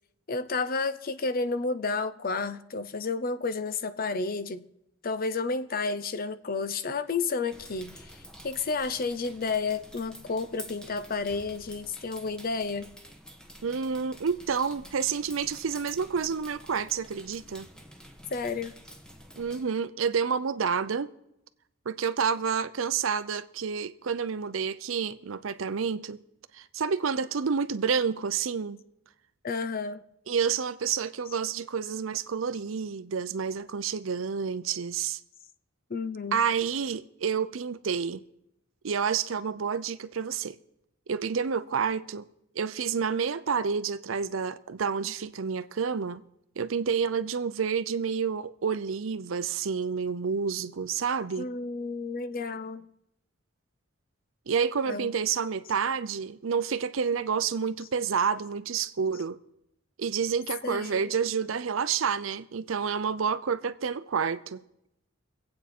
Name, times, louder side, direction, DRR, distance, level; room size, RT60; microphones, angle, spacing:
voice 1, 0.3-4.6 5.0-8.1 8.4-12.9 18.3-18.7 29.4-30.0 35.9-36.4 51.4-52.8 54.9-55.1 60.6-61.1, left 4 dB, 50° left, 0.7 m, -31 dB
sound 1, 7.5-19.6, equal, 5° left, 1.3 m, -49 dB
voice 2, 13.6-17.7 19.4-21.1 21.9-26.2 26.5-28.8 30.3-35.2 36.3-38.2 38.8-40.6 41.1-42.2 42.6-46.2 46.6-51.5 54.5-59.4 60.0-64.6, right 6 dB, 80° right, 0.6 m, -29 dB
25.0 x 8.6 x 4.3 m
head